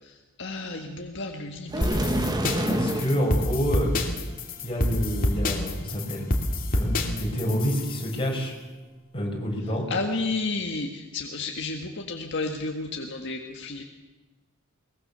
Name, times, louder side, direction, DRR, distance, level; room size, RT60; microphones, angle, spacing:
voice 1, 0.4-2.1 9.9-13.8, left 3 dB, 60° left, 2 dB, 1.8 m, -31 dB
sound 1, 1.7-3.2, right 1 dB, 20° right, 1.6 m, -26 dB
sound 2, 1.8-8.2, left 1 dB, 45° left, 3.0 m, -27 dB
voice 2, 2.7-3.9 4.6-6.3 6.7-8.5 9.1-9.8, equal, 25° left, 0 dB, 5.6 m, -28 dB
22.5 x 20.5 x 6.9 m, 1.2 s
head